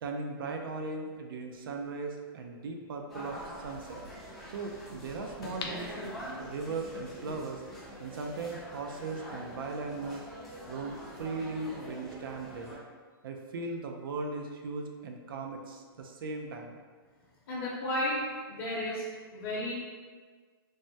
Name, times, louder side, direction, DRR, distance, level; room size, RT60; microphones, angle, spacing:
voice 1, 0.0-4.0 4.5-5.9 6.4-7.6 8.0-10.2 10.7-12.7 13.2-16.7, right 3 dB, 65° right, 3 dB, 0.4 m, -38 dB
sound 1, 1.8-1.9 5.4-6.7 7.2-7.3, left 4 dB, 90° left, 0.4 m, -42 dB
sound 2, 3.1-12.8, equal, ahead, 0.5 m, -45 dB
voice 2, 17.5-18.2 18.5-19.0 19.3-19.7, left 1 dB, 35° left, -8 dB, 0.7 m, -32 dB
3.3 x 2.1 x 2.6 m, 1.5 s
hypercardioid pair, 160°, 13 cm